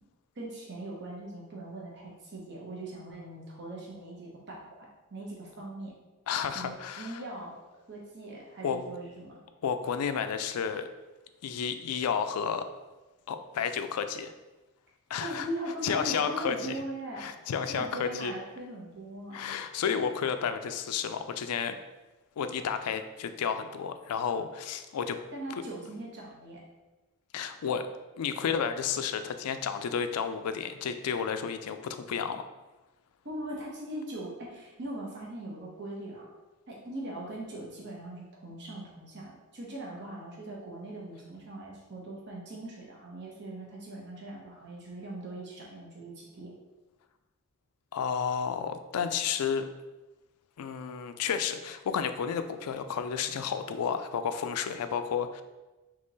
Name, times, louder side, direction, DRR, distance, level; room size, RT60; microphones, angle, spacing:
voice 1, 0.3-5.9 6.5-7.5 7.9-9.4 15.2-17.3 17.7-19.5 25.3-26.6 33.2-36.3 36.7-46.5, right 1 dB, 55° right, -3 dB, 1.0 m, -40 dB
voice 2, 6.3-7.2 8.6-8.8 9.6-10.9 11.4-12.6 13.3-14.3 15.1-15.5 15.8-16.7 17.2-18.3 19.3-21.8 22.4-25.2 27.3-27.9 28.2-32.4 47.9-49.7 50.6-55.4, left 7 dB, 90° left, 9 dB, 0.4 m, -31 dB
3.6 x 2.9 x 4.0 m, 1.1 s
head